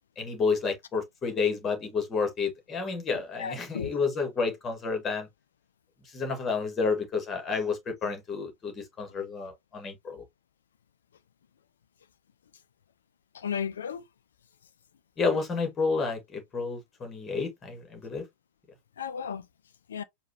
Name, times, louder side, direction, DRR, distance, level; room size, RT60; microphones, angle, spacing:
voice 1, 0.2-5.3 6.1-10.2 15.2-18.2, left 4 dB, 20° left, 1.6 m, -30 dB
voice 2, 3.4-4.0 13.3-14.0 19.0-19.5 19.9-20.0, left 7 dB, 65° left, 0.5 m, -34 dB
4.7 x 2.4 x 2.8 m
figure-of-eight pair, 90°, 0 cm